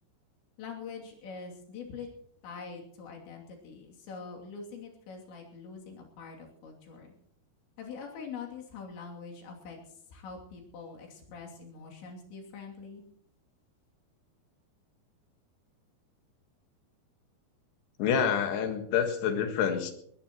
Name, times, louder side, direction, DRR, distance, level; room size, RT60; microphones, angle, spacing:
voice 1, 0.6-2.1 2.4-7.1 7.8-9.8 10.1-13.0, left 5 dB, 85° left, -1 dB, 5.1 m, -44 dB
voice 2, 18.0-19.9, left 7 dB, 70° left, 5 dB, 3.6 m, -27 dB
20.5 x 20.0 x 3.0 m, 0.69 s
omnidirectional pair, 5.0 m